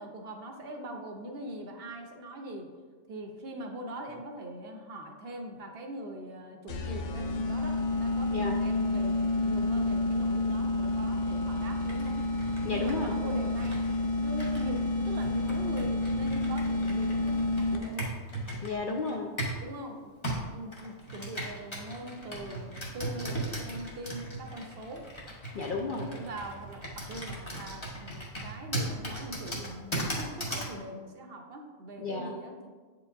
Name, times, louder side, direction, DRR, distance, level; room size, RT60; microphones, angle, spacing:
voice 1, 0.0-2.7 3.1-12.2 12.7-13.8 14.2-18.1 19.6-20.1 20.5-25.1 25.9-32.7, right 1 dB, 60° right, 3 dB, 0.8 m, -42 dB
sound 1, 6.7-18.1, left 2 dB, 75° left, 0.9 m, -29 dB
Computer keyboard, 11.8-19.7 20.2-30.8, right 1 dB, 25° left, 1.0 m, -38 dB
voice 2, 12.6-13.1 18.6-19.3 25.5-26.2 32.0-32.3, left 3 dB, 60° left, 1 dB, 0.5 m, -33 dB
8.3 x 4.6 x 2.6 m, 1.5 s
omnidirectional pair, 1.3 m